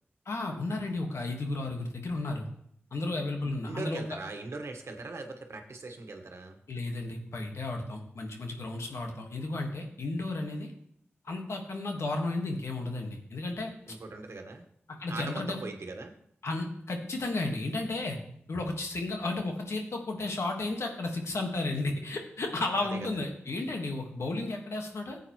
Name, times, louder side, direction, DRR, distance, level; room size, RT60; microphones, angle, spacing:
voice 1, 0.2-2.5 2.9-4.0 6.7-10.7 11.2-13.7 15.0-15.6 16.4-18.2 18.5-25.2, left 2 dB, 85° left, 2 dB, 1.6 m, -33 dB
voice 2, 3.4-6.6 13.9-14.6 15.1-16.1 22.8-23.2, right 3 dB, 80° right, 4 dB, 1.3 m, -40 dB
15.0 x 8.1 x 3.1 m, 0.69 s
cardioid pair, 45°, 5 cm